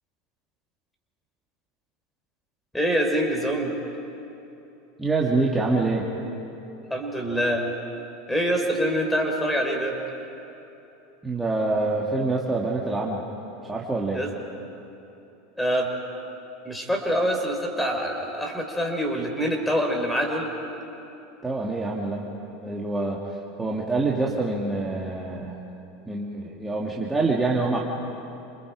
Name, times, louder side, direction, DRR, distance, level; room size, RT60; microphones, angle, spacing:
voice 1, 2.7-3.8 6.9-7.6 8.3-9.9 14.1-14.3 15.6-15.9 16.6-20.5, equal, 5° left, 2 dB, 4.6 m, -25 dB
voice 2, 5.0-6.1 11.2-13.2 13.7-14.2 21.4-22.2 22.6-25.5 26.1-27.8, right 3 dB, 10° right, -3 dB, 2.6 m, -26 dB
29.0 x 27.0 x 5.0 m, 3.0 s
figure-of-eight pair, 80°, 0 cm